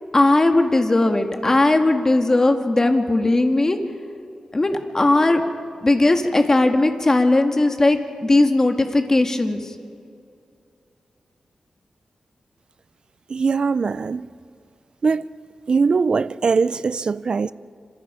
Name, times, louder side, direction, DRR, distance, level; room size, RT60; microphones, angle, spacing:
voice 1, 0.1-3.8 4.5-5.4 5.8-9.7, left 2 dB, 25° left, 1.8 m, -18 dB
voice 2, 13.3-14.3 15.0-15.2 15.7-17.5, right 5 dB, 50° right, 0.5 m, -21 dB
27.0 x 26.5 x 5.1 m
wide cardioid pair, 110°, 2 cm